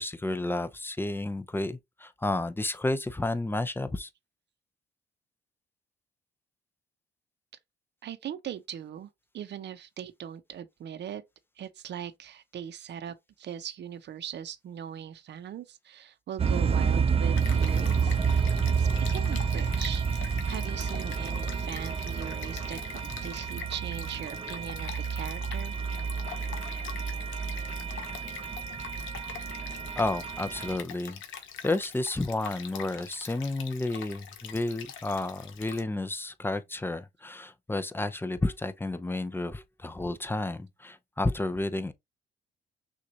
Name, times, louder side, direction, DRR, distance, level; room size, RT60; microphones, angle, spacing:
voice 1, 0.0-4.1 29.9-31.2 31.6-41.9, left 2 dB, 10° left, 0.6 m, -31 dB
voice 2, 8.0-9.1 9.3-11.2 11.6-20.0 20.4-25.7, right 9 dB, 60° right, 0.8 m, -40 dB
sound 1, 16.4-30.8, right 6 dB, 30° right, 0.6 m, -29 dB
Stream, 17.4-35.8, left 8 dB, 75° left, 0.9 m, -44 dB
6.2 x 2.5 x 2.8 m
cardioid pair, 90°, 20 cm